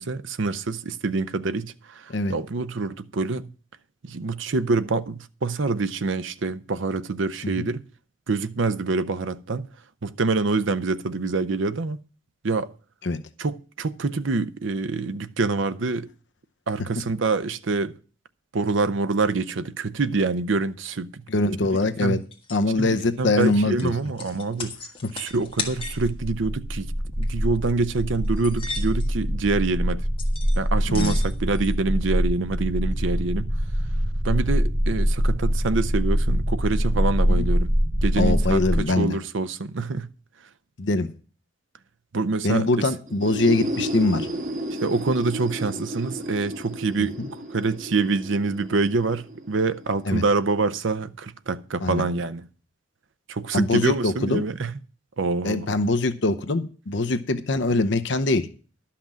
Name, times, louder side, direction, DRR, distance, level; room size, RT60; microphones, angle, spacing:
voice 1, 0.0-3.5 4.0-7.8 8.3-9.7 10.0-12.0 12.4-12.7 13.4-16.1 16.7-17.9 18.5-21.2 21.6-22.2 22.8-24.7 25.1-30.0 30.6-33.5 34.2-37.7 38.0-40.1 42.1-42.9 44.8-47.2 47.5-52.5 53.3-54.7 55.2-55.7, right 3 dB, 65° right, 0.6 m, -26 dB
voice 2, 21.3-22.2 22.5-23.9 30.9-31.1 37.3-37.5 38.2-39.1 40.8-41.1 42.4-44.3 47.2-47.3 50.1-50.2 51.8-52.0 53.5-54.4 55.4-58.5, left 2 dB, 60° left, 0.7 m, -23 dB
sound 1, 21.8-21.9 22.3-22.6 23.0-26.1 27.1-27.3 27.7-27.8 28.2-29.1 30.2-30.6 30.9-31.7, left 4 dB, 25° left, 1.4 m, -36 dB
sound 2, 25.5-38.8, equal, 15° right, 0.6 m, -24 dB
sound 3, 43.1-50.7, right 1 dB, 40° right, 1.5 m, -33 dB
12.0 x 5.8 x 7.3 m
head